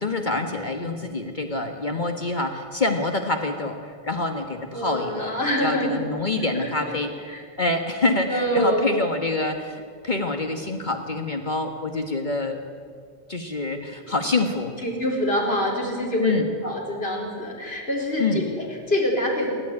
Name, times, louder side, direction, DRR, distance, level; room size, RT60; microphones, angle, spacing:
voice 1, 0.0-5.4 5.6-7.1 7.6-12.6 13.3-14.7 16.2-16.5 18.2-18.4, left 2 dB, 45° left, 4 dB, 1.6 m, -26 dB
voice 2, 4.7-5.9 6.6-6.9 7.3-7.4 8.3-8.9 14.0-14.2 14.8-16.3 16.6-19.5, equal, 60° left, -2 dB, 4.8 m, -25 dB
28.5 x 12.5 x 9.8 m, 2.1 s
omnidirectional pair, 1.2 m